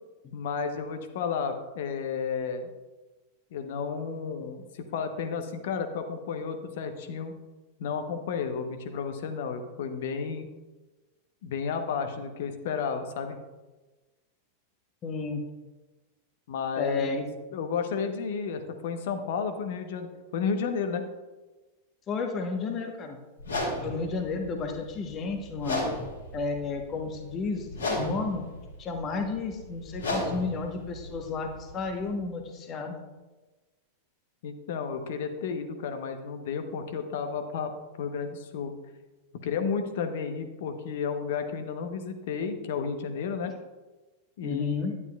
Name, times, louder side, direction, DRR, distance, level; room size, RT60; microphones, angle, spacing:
voice 1, 0.3-2.7 3.5-7.4 7.8-10.5 11.4-13.4 16.5-17.2 17.5-21.1 34.4-37.7 38.0-38.7 39.4-43.5 44.4-44.7, left 6 dB, 55° left, 7 dB, 0.9 m, -32 dB
voice 2, 15.0-15.4 16.8-17.3 22.1-23.2 23.8-25.9 26.3-28.4 28.8-33.0 44.4-44.9, left 4 dB, 30° left, 4 dB, 1.1 m, -32 dB
sound 1, 23.4-32.2, left 1 dB, 70° left, 3.0 m, -35 dB
11.0 x 9.6 x 2.3 m, 1.2 s
figure-of-eight pair, 90°, 0 cm